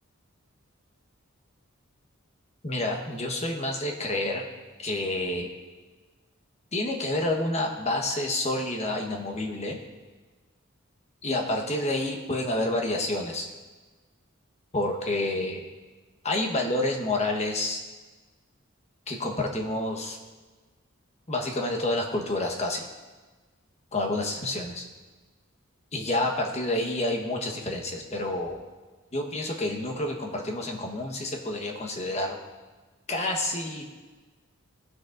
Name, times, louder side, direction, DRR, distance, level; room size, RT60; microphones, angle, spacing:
voice 1, 2.6-4.4 4.8-5.5 6.7-9.8 11.2-13.5 14.7-15.6 16.2-17.8 19.1-20.2 21.3-22.9 23.9-24.8 25.9-28.6 29.1-32.4 33.1-33.8, left 1 dB, 30° left, 2 dB, 1.1 m, -29 dB
18.0 x 6.3 x 2.5 m, 1.3 s
head